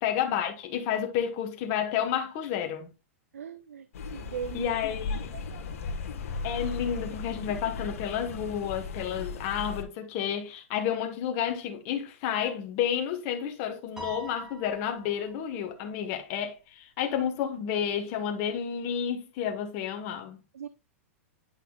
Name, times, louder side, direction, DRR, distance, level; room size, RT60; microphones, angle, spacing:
voice 1, 0.0-2.9 4.5-5.3 6.4-20.4, left 9 dB, 45° left, 1.2 m, -31 dB
voice 2, 3.3-3.9 4.1-4.6 5.3-5.4 20.5-20.7, right 7 dB, 90° right, 0.5 m, -38 dB
sound 1, 3.9-9.8, left 4 dB, 70° left, 1.4 m, -36 dB
Piano, 14.0-15.5, equal, 5° right, 2.9 m, -43 dB
9.1 x 5.7 x 2.3 m
hypercardioid pair, 125°, 8 cm